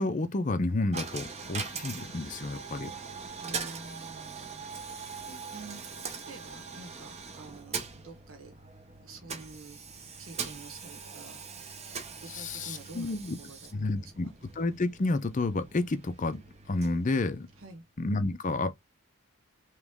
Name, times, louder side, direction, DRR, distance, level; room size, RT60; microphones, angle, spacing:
voice 1, 0.0-2.9 5.3-5.4 12.3-13.4 13.7-14.3 14.6-16.4 16.7-17.5 18.0-18.7, left 2 dB, 35° left, 0.5 m, -30 dB
Coin (dropping), 0.9-17.9, right 5 dB, 30° right, 0.8 m, -42 dB
voice 2, 3.4-4.6 5.5-8.6 9.0-9.8 10.2-11.4 12.1-13.2 13.5-14.3 17.6-17.8, right 3 dB, 70° right, 1.2 m, -48 dB
3.4 x 3.1 x 3.5 m
head